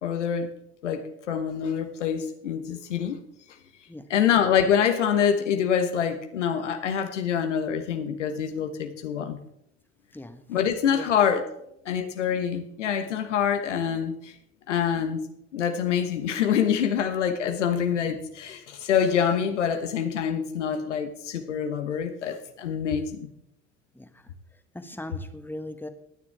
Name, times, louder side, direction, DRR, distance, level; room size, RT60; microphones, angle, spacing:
voice 1, 0.0-0.5 0.8-3.2 4.1-9.4 10.5-11.4 11.8-14.3 14.7-15.2 15.5-23.3, left 8 dB, 85° left, 7 dB, 1.1 m, -26 dB
voice 2, 24.7-25.9, left 1 dB, 5° left, 8 dB, 1.4 m, -38 dB
17.5 x 9.5 x 3.4 m, 0.76 s
hypercardioid pair, 60°, 35 cm